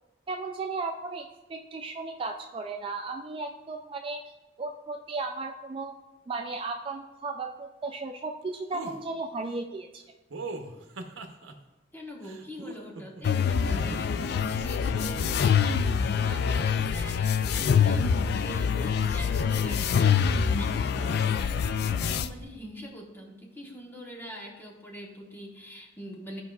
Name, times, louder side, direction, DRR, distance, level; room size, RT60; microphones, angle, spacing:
voice 1, 0.3-4.2 4.6-5.9 6.3-10.0, right 3 dB, 30° right, 4 dB, 0.3 m, -35 dB
sound 1, 8.7-9.0 10.3-11.5 12.2-13.2 13.8-14.3, right 3 dB, 85° right, 0.8 m, -39 dB
voice 2, 11.9-26.4, equal, 10° left, -1 dB, 1.1 m, -43 dB
sound 2, 13.2-22.3, left 7 dB, 55° left, 0.3 m, -25 dB
12.5 x 4.7 x 2.3 m, 1.1 s
head